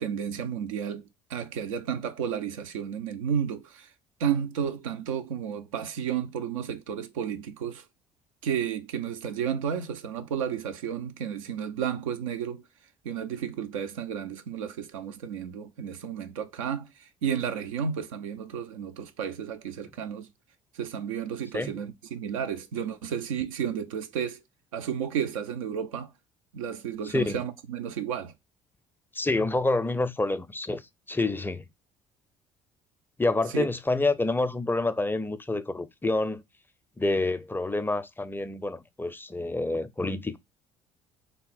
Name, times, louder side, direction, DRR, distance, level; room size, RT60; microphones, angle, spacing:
voice 1, 0.0-3.9 4.2-7.8 8.4-12.6 13.0-20.3 20.7-24.4 24.7-26.1 26.5-28.3 33.5-33.7, right 8 dB, 85° right, 0.4 m, -32 dB
voice 2, 27.1-27.4 29.1-30.8 31.1-31.7 33.2-36.4 37.0-40.4, left 2 dB, 10° left, 0.4 m, -28 dB
3.4 x 2.0 x 3.9 m
hypercardioid pair, 55°, 17 cm